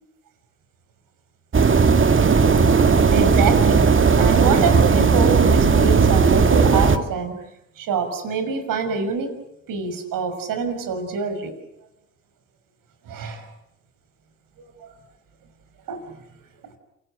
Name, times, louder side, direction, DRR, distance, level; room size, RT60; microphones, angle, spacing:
sound 1, 1.5-7.0, right 5 dB, 35° right, 2.1 m, -16 dB
voice 1, 3.1-3.8 4.2-7.4 7.8-9.3 9.7-11.5 13.0-13.5 14.6-14.9 15.9-16.2, right 5 dB, 70° right, 7 dB, 6.0 m, -26 dB
27.5 x 19.5 x 9.1 m, 0.86 s
supercardioid pair, 60°, 34 cm